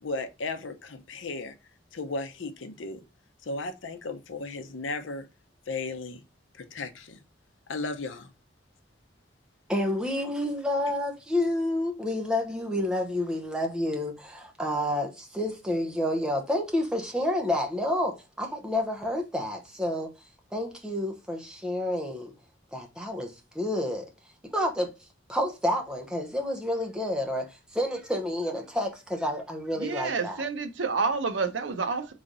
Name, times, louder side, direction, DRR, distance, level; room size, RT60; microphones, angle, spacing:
voice 1, 0.0-1.5 1.9-3.0 3.4-5.3 5.7-6.2 6.5-7.2 7.7-8.3, left 3 dB, 75° left, 0.6 m, -35 dB
voice 2, 9.7-20.1 20.5-22.3 22.7-24.1 24.5-24.9 25.3-30.4, left 1 dB, 5° right, 0.8 m, -29 dB
voice 3, 29.8-32.1, right 4 dB, 75° right, 0.7 m, -29 dB
3.9 x 3.2 x 3.8 m
head